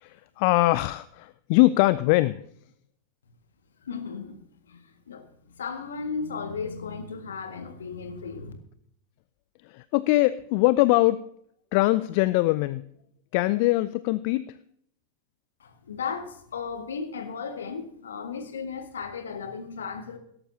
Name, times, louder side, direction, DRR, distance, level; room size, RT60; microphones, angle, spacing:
voice 1, 0.0-2.4 9.7-11.3 11.7-12.8 13.3-14.6, left 19 dB, 45° left, 0.4 m, -22 dB
voice 2, 3.8-5.3 5.6-8.5 15.6-20.2, left 5 dB, 65° left, 1.8 m, -35 dB
17.5 x 14.0 x 2.8 m
figure-of-eight pair, 90°, 0 cm